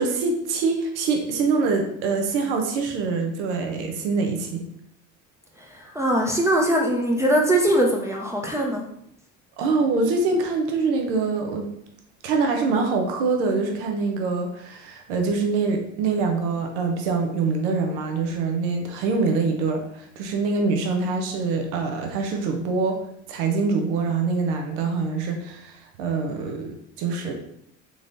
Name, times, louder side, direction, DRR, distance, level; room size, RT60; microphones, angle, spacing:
voice 1, 0.0-4.6 9.6-11.7 12.2-23.0 23.3-27.3, right 4 dB, 85° right, 3 dB, 0.7 m, -24 dB
voice 2, 5.8-8.8, right 1 dB, 10° right, -1 dB, 0.5 m, -21 dB
3.8 x 3.2 x 2.5 m, 0.73 s
supercardioid pair, 90°, 34 cm